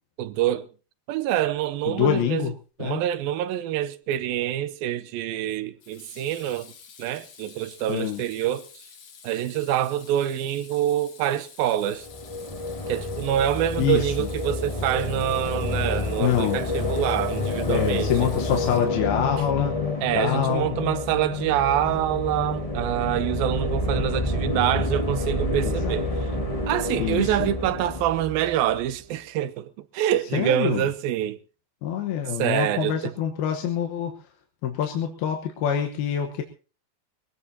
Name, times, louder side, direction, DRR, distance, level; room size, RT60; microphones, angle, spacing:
voice 1, 0.2-0.7 1.1-2.5 2.8-6.7 7.0-8.7 9.2-12.1 12.9-18.1 20.0-26.1 26.7-31.4 32.4-33.0, right 12 dB, 80° right, 2.6 m, -26 dB
voice 2, 1.9-2.5 2.8-3.0 7.9-8.2 13.8-14.3 16.2-16.6 17.7-19.8 20.1-20.8 25.6-26.0 27.0-27.5 30.3-30.9 31.8-34.3 34.6-36.4, left 9 dB, 80° left, 3.1 m, -26 dB
Water tap faucet / Sink (filling or washing), 4.1-4.5 5.8-19.2, left 7 dB, 55° left, 2.8 m, -49 dB
sound 1, 11.9-28.9, left 2 dB, 30° left, 0.6 m, -28 dB
22.0 x 17.0 x 2.8 m
omnidirectional pair, 4.3 m